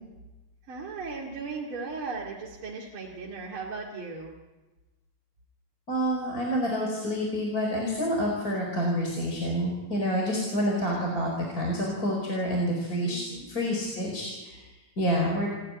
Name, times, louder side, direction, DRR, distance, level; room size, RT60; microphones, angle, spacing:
voice 1, 0.7-4.3 13.0-13.5, right 4 dB, 40° right, -3 dB, 2.9 m, -37 dB
voice 2, 5.9-13.2 13.5-14.6 15.0-15.5, equal, 25° left, -1 dB, 5.0 m, -28 dB
29.5 x 13.0 x 9.7 m, 1.2 s
omnidirectional pair, 3.8 m